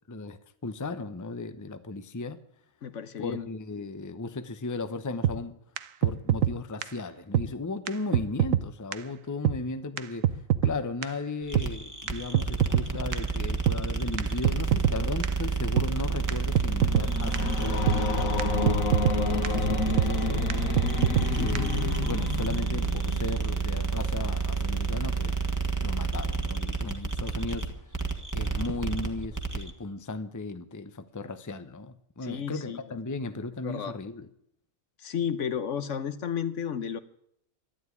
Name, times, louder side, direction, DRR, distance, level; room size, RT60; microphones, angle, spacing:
voice 1, 0.1-2.4 3.2-5.6 6.0-18.7 19.3-20.5 21.1-25.4 25.8-27.7 28.3-34.3, left 3 dB, 15° left, 10 dB, 0.7 m, -36 dB
voice 2, 2.8-3.5 32.2-33.0 33.6-34.0 35.0-37.0, left 8 dB, 65° left, 12 dB, 1.2 m, -32 dB
sound 1, 5.2-5.4 5.8-5.9 6.0-6.5 6.8-6.9 7.3-7.5 7.9-8.0 8.1-8.6 8.9-9.0 9.4-9.6 10.0-10.1 10.2-10.7 11.0-11.1 11.5-11.7 12.1-12.9 13.1-13.2 13.7-13.8 14.2-14.3 14.4-15.0 15.2-15.3 15.8-15.9 16.3-16.4 16.5-17.1 17.3-17.4 17.9-18.0 18.4-18.5 18.7-19.2 19.4-19.5 20.0-20.1 20.5-20.6 20.8-21.3 21.5-21.6, right 11 dB, 75° right, 1.1 m, -23 dB
sound 2, 11.5-29.7, right 4 dB, 15° right, 1.5 m, -29 dB
sound 3, 16.3-23.5, left 5 dB, 90° left, 1.7 m, -31 dB
12.0 x 11.5 x 9.6 m, 0.73 s
omnidirectional pair, 1.4 m